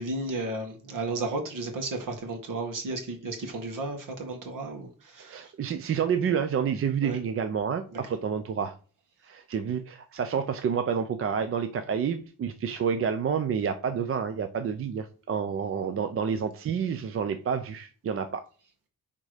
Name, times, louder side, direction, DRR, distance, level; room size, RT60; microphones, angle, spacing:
voice 1, 0.0-5.5 7.0-7.2 7.9-8.1, right 2 dB, 65° right, 2.1 m, -34 dB
voice 2, 5.2-8.7 9.2-18.4, right 7 dB, 40° right, 0.5 m, -29 dB
10.5 x 3.7 x 5.0 m
wide cardioid pair, 165°, 35 cm